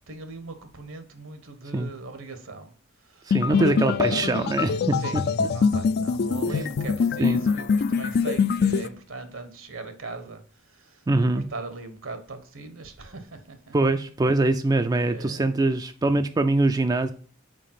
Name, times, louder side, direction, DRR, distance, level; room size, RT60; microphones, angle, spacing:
voice 1, 0.1-2.7 3.0-4.5 5.0-13.7 15.0-15.6, right 3 dB, 75° right, 1.2 m, -39 dB
sound 1, 3.3-8.9, left 5 dB, 50° left, 0.4 m, -24 dB
voice 2, 3.3-5.0 5.4-5.5 7.2-7.4 11.1-11.4 13.7-17.1, right 2 dB, 20° right, 0.3 m, -23 dB
5.2 x 4.6 x 5.7 m
head